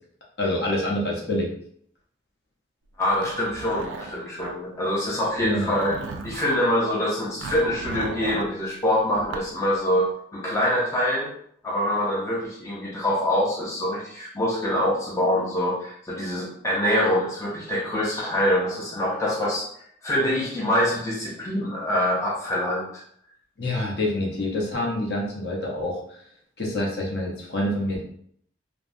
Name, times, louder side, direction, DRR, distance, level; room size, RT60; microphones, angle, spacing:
voice 1, 0.4-1.5 5.4-5.7 23.6-26.2 26.6-28.0, left 1 dB, 55° left, -2 dB, 0.8 m, -27 dB
voice 2, 3.0-11.3 11.6-19.7 20.0-23.0, left 1 dB, 15° left, -5 dB, 0.5 m, -25 dB
Zipper (clothing), 3.0-4.5 5.4-6.6 7.4-8.5 9.1-9.5, right 4 dB, 75° right, 0.3 m, -36 dB
3.2 x 2.0 x 2.5 m, 0.66 s
head